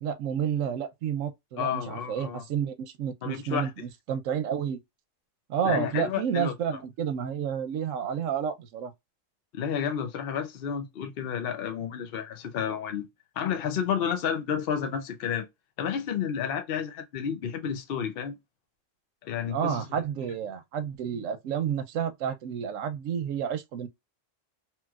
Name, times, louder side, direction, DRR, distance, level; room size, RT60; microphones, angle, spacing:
voice 1, 0.0-4.8 5.5-8.9 19.5-23.9, right 8 dB, 90° right, 1.0 m, -30 dB
voice 2, 1.6-2.4 3.2-3.7 5.6-6.5 9.5-13.1 13.4-15.5 15.8-18.4 19.2-19.8, left 8 dB, 55° left, 0.7 m, -31 dB
3.0 x 2.9 x 2.3 m
omnidirectional pair, 1.3 m